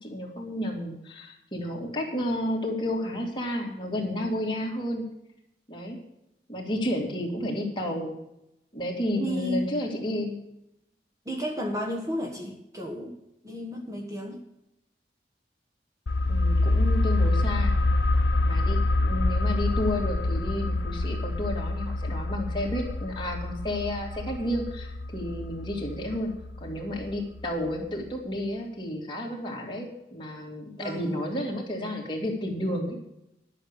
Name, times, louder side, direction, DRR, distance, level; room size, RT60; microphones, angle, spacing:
voice 1, 0.0-5.0 5.7-6.0 6.5-8.2 8.7-10.4 16.2-17.8 18.4-26.3 26.6-33.0, left 1 dB, 25° left, -1 dB, 2.7 m, -31 dB
voice 2, 9.2-9.6 11.2-13.2 13.4-14.4 30.8-31.2, equal, 20° right, 2 dB, 1.3 m, -32 dB
sound 1, 16.1-27.4 27.7-27.8, left 2 dB, 85° left, 0.6 m, -26 dB
11.5 x 6.8 x 8.3 m, 0.84 s
head